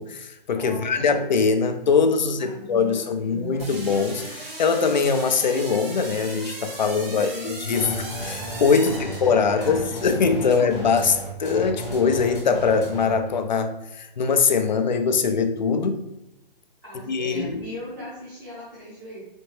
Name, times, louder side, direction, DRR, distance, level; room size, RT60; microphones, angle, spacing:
voice 1, 0.0-16.0 17.1-17.6, left 5 dB, 50° left, 8 dB, 0.4 m, -22 dB
voice 2, 0.5-1.1 2.2-3.6 7.1-7.7 8.8-10.0 10.5-10.7 16.8-19.2, equal, 20° right, -10 dB, 0.6 m, -39 dB
sound 1, 3.6-9.8, right 2 dB, 80° right, 1.4 m, -38 dB
sound 2, 7.7-13.3, right 1 dB, 15° left, 0.8 m, -34 dB
4.3 x 2.7 x 3.1 m, 0.94 s
hypercardioid pair, 175°, 29 cm